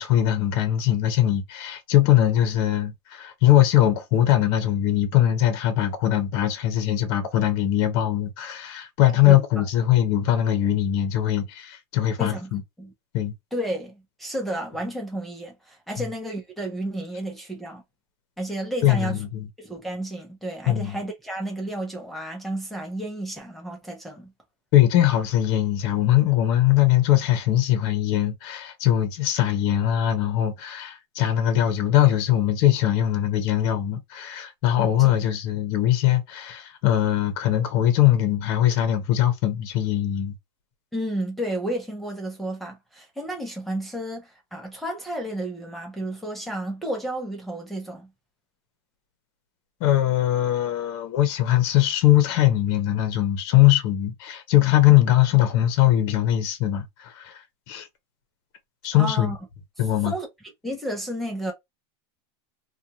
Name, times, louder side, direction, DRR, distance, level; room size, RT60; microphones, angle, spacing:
voice 1, 0.0-12.6 13.1-13.3 16.0-16.1 18.8-19.5 20.7-21.0 24.7-40.4 49.8-57.9 58.8-59.3 59.8-60.1, left 12 dB, 50° left, 0.8 m, -21 dB
voice 2, 9.2-9.6 12.2-12.5 12.8-12.9 13.5-17.8 18.4-19.2 19.6-24.3 35.0-35.1 40.9-48.1 58.9-59.4 60.0-60.3 60.6-61.5, right 1 dB, ahead, 0.6 m, -32 dB
2.5 x 2.3 x 2.7 m
supercardioid pair, 160°, 14 cm